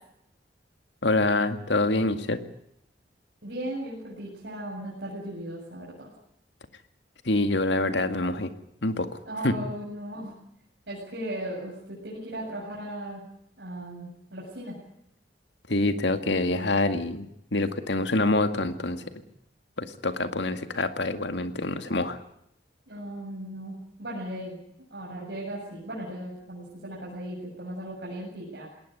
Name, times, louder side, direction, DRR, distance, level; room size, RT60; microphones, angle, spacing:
voice 1, 1.0-2.4 7.3-8.5 8.8-9.1 9.4-9.5 15.7-17.3 17.5-19.0 19.8-22.2, left 2 dB, 70° left, 9 dB, 2.1 m, -26 dB
voice 2, 3.4-6.1 9.3-10.3 10.9-13.2 13.6-14.8 22.9-24.6 24.9-28.7, right 1 dB, 65° right, -4 dB, 7.9 m, -37 dB
21.0 x 18.5 x 9.4 m, 0.75 s
head